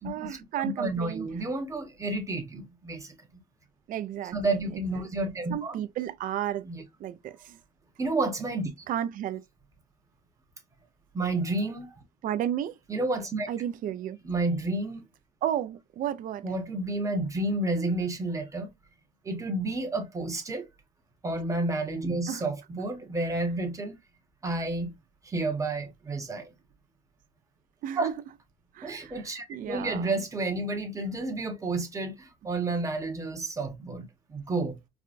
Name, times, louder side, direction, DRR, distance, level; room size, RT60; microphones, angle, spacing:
voice 1, 0.0-1.3 3.9-6.7 7.0-7.6 8.9-9.4 12.2-12.8 13.5-14.2 15.4-16.5 22.3-22.5 27.8-28.1 28.7-30.2, right 11 dB, 55° right, 0.4 m, -33 dB
voice 2, 0.6-3.1 4.3-5.7 6.7-6.8 8.0-8.7 11.1-11.9 12.9-13.5 14.2-15.0 16.4-18.7 19.2-20.7 21.2-23.9 24.4-24.9 25.2-26.5 28.0-28.1 28.8-34.8, right 2 dB, 20° right, 1.0 m, -30 dB
4.8 x 2.2 x 2.5 m
cardioid pair, 110°, 17 cm